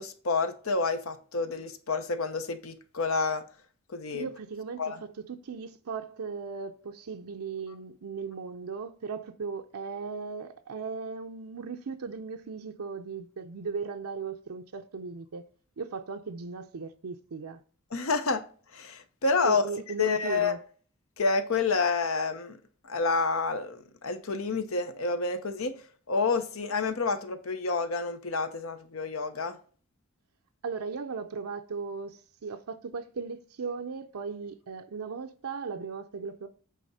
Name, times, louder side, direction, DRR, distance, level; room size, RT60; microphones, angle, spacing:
voice 1, 0.0-3.4 3.9-4.3 4.8-5.0 17.9-18.4 18.7-19.6 20.0-20.5 21.2-22.6 22.8-25.7 26.1-29.6, left 4 dB, 75° left, 0.9 m, -29 dB
voice 2, 4.1-15.5 15.8-17.6 19.4-20.6 30.6-36.5, right 5 dB, 85° right, 0.6 m, -37 dB
8.4 x 3.5 x 5.5 m
head